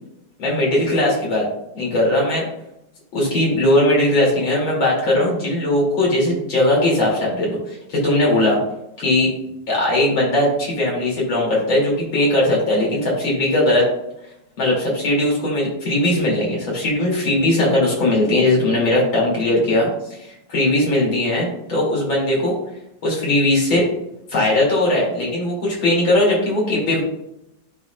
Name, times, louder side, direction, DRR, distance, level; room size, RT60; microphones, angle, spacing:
voice 1, 0.4-1.5 1.7-2.4 3.1-8.6 9.0-9.3 9.7-13.9 14.6-22.5 23.0-23.8 24.3-27.0, left 1 dB, 85° left, -4 dB, 3.4 m, -19 dB
12.5 x 4.2 x 2.3 m, 0.81 s
omnidirectional pair, 2.1 m